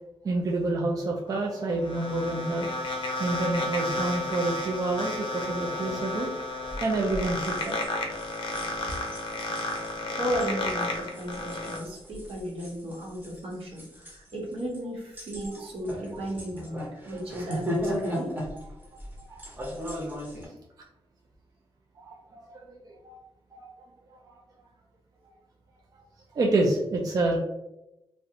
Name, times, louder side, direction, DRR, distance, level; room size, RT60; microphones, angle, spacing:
voice 1, 0.2-2.7 3.2-6.3 6.8-7.8 9.0-9.1 15.4-15.5 15.9-16.2 17.1-17.4 18.5-18.6 19.2-19.4 22.0-23.2 23.5-23.7 24.1-24.2 26.4-27.4, right 2 dB, 40° right, -1 dB, 0.3 m, -29 dB
sound 1, 1.3-11.8, left 2 dB, 55° left, 0.5 m, -32 dB
sound 2, 4.3-4.4 4.9-5.1 5.8-5.9 6.6-20.4, equal, 20° right, 0.7 m, -37 dB
voice 2, 10.1-18.3, equal, 70° right, -3 dB, 0.8 m, -34 dB
2.4 x 2.0 x 2.7 m, 0.92 s
wide cardioid pair, 120°, 10 cm